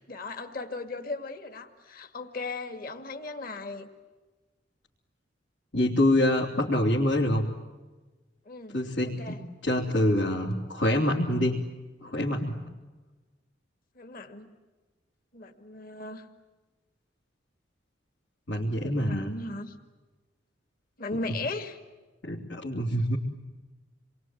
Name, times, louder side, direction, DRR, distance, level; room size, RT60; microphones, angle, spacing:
voice 1, 0.1-3.9 8.5-8.8 9.2-9.4 14.0-14.5 15.3-16.3 18.8-19.7 21.0-21.8, left 3 dB, 50° left, 6 dB, 2.2 m, -37 dB
voice 2, 5.7-7.4 8.7-9.3 9.6-11.6 12.0-12.5 18.5-19.3 22.2-23.2, left 1 dB, 85° left, -4 dB, 3.4 m, -25 dB
28.5 x 22.5 x 9.3 m, 1.2 s
head